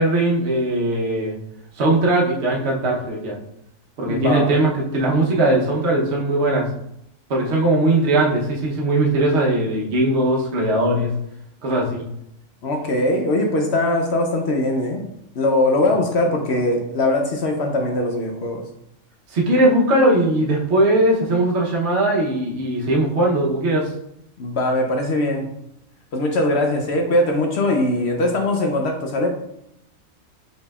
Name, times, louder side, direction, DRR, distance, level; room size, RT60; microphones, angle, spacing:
voice 1, 0.0-1.4 1.8-3.4 4.0-6.7 7.3-11.1 11.6-12.1 19.3-23.9, right 1 dB, 55° right, -2 dB, 1.1 m, -19 dB
voice 2, 4.1-4.5 12.6-15.1 15.3-18.6 24.4-25.5 26.1-29.3, left 1 dB, 60° left, 2 dB, 0.8 m, -21 dB
5.1 x 4.3 x 2.3 m, 0.78 s
omnidirectional pair, 1.4 m